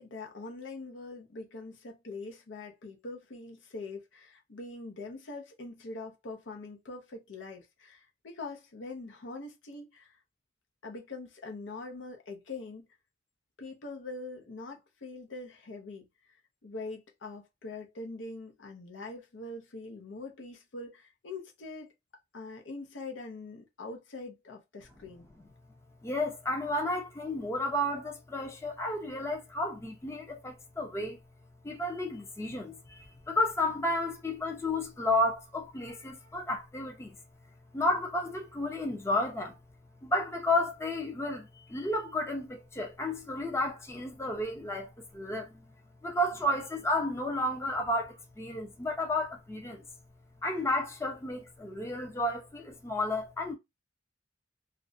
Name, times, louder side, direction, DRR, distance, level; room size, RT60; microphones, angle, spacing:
voice 1, 0.0-10.2 10.8-12.9 13.6-16.1 16.6-21.9 22.3-25.3, left 3 dB, 75° left, 0.6 m, -43 dB
voice 2, 26.0-31.2 31.6-37.2 37.7-39.6 40.0-45.7 46.0-49.8 50.4-53.5, left 1 dB, 15° left, 0.5 m, -32 dB
2.5 x 2.1 x 2.5 m
head